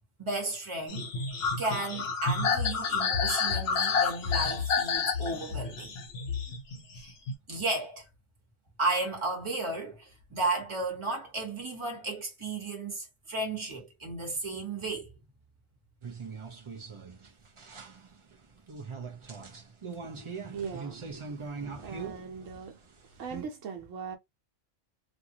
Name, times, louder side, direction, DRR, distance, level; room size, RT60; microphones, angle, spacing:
voice 1, 0.2-1.1 1.6-5.9 6.9-7.1 7.5-8.1 8.8-15.1 21.5-22.1, right 2 dB, 25° right, 1.2 m, -34 dB
sound 1, 0.9-7.3, left 5 dB, 60° left, 1.0 m, -29 dB
sound 2, 16.0-23.4, right 5 dB, 45° right, 0.4 m, -42 dB
voice 2, 20.5-21.2 21.7-22.8 23.2-24.2, right 6 dB, 90° right, 1.2 m, -40 dB
2.6 x 2.5 x 2.8 m
omnidirectional pair, 1.3 m